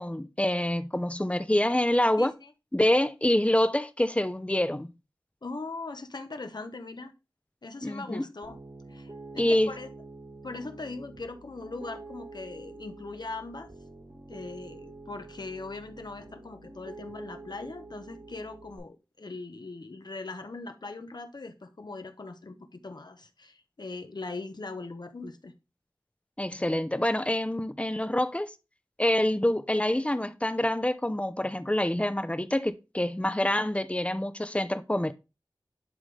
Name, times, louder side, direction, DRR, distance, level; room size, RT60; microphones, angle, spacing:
voice 1, 0.0-2.3 2.7-4.9 7.8-8.2 9.4-9.7 26.4-28.5 29.0-35.1, left 1 dB, 15° left, 0.7 m, -26 dB
voice 2, 2.2-2.5 5.4-7.1 7.6-8.6 8.9-9.9 10.4-13.7 14.3-25.5, left 3 dB, 70° left, 0.9 m, -40 dB
Piano, 8.4-18.8, right 3 dB, 85° right, 4.6 m, -47 dB
11.0 x 3.9 x 3.3 m
wide cardioid pair, 45°, 8 cm